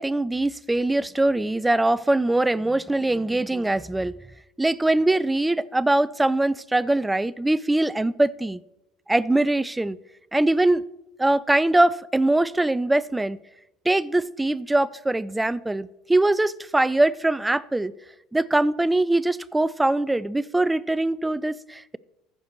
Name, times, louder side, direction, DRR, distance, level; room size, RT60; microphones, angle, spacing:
voice 1, 0.0-4.2 4.6-8.6 9.1-10.0 10.3-10.9 11.2-13.4 13.9-17.9 18.3-22.0, right 2 dB, 10° right, 0.3 m, -22 dB
15.0 x 6.6 x 3.0 m
supercardioid pair, 105°, 0 cm